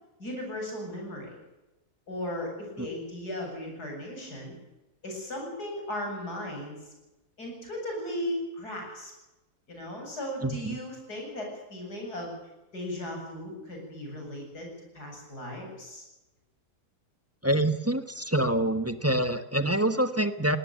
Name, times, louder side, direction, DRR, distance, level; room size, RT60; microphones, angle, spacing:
voice 1, 0.2-1.3 2.1-4.5 5.0-6.8 7.4-9.1 9.7-12.4 12.7-16.0, left 1 dB, 90° left, 1 dB, 8.4 m, -36 dB
voice 2, 10.4-10.8 17.4-20.6, right 1 dB, 10° right, 9 dB, 1.1 m, -26 dB
20.5 x 18.5 x 9.1 m, 1.0 s
omnidirectional pair, 1.6 m